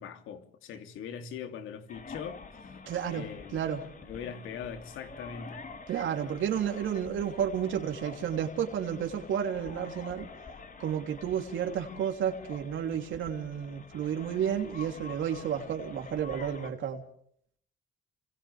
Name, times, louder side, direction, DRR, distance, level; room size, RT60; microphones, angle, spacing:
voice 1, 0.0-2.8 3.1-3.6 4.0-5.6, left 7 dB, 90° left, 3.0 m, -41 dB
sound 1, 1.9-16.7, left 4 dB, 45° left, 3.6 m, -47 dB
voice 2, 2.9-3.2 3.5-3.8 5.9-10.3 10.8-17.0, right 8 dB, 75° right, 3.1 m, -31 dB
29.5 x 26.0 x 3.4 m
cardioid pair, 90°, 20 cm